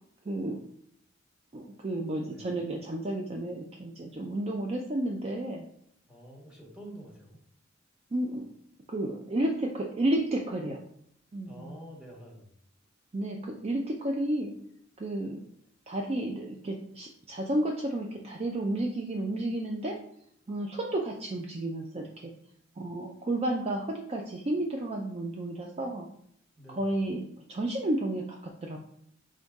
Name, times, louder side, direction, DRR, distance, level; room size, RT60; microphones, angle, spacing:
voice 1, 0.3-0.6 1.5-5.7 8.1-8.5 8.9-10.8 11.3-11.8 13.1-14.5 15.0-15.4 15.9-19.9 20.5-22.3 22.8-26.1 26.7-28.8, right 1 dB, 30° right, 1 dB, 0.4 m, -32 dB
voice 2, 2.3-2.6 6.1-7.4 11.4-12.6 26.6-26.9, right 1 dB, 5° right, -3 dB, 1.2 m, -48 dB
4.0 x 3.7 x 3.6 m, 0.70 s
head